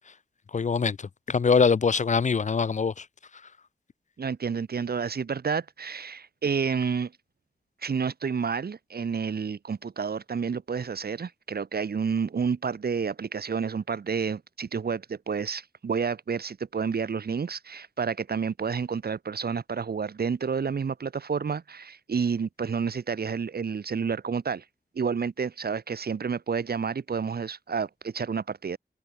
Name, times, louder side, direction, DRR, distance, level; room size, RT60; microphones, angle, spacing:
voice 1, 0.5-3.0, left 5 dB, 50° left, 0.4 m, -23 dB
voice 2, 4.2-7.1 7.8-24.6 24.9-28.8, right 6 dB, 70° right, 0.9 m, -30 dB
wide cardioid pair, 70°, 17 cm